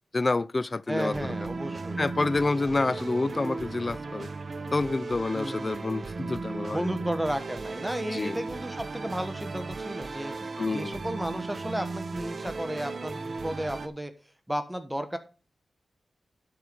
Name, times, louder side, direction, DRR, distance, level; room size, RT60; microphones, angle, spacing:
voice 1, 0.1-1.4 2.0-4.3 4.7-6.9 8.1-8.4 10.6-11.0, left 3 dB, 40° left, 0.3 m, -28 dB
voice 2, 0.9-2.0 5.3-5.9 6.7-14.1 14.5-15.2, right 1 dB, 10° right, 1.2 m, -33 dB
sound 1, 0.9-13.9, right 3 dB, 55° right, 0.8 m, -36 dB
12.0 x 4.7 x 5.2 m
cardioid pair, 50°, 0 cm